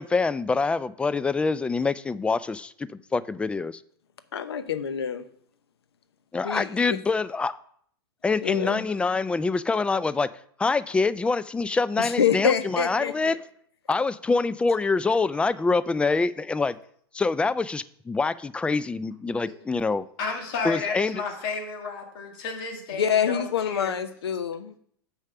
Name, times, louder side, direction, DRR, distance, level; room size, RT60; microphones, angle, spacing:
voice 1, 0.0-3.8 6.3-7.6 8.2-10.3 10.6-13.4 13.9-16.8 17.1-20.1 20.6-21.2, left 4 dB, 10° left, 16 dB, 0.3 m, -25 dB
voice 2, 4.3-5.2 6.4-7.0 8.4-8.9 12.0-13.4 22.9-24.7, left 7 dB, 85° left, 11 dB, 0.8 m, -26 dB
voice 3, 19.9-24.0, left 5 dB, 60° left, 2 dB, 2.2 m, -32 dB
6.4 x 4.9 x 6.7 m, 0.63 s
hypercardioid pair, 105°, 13 cm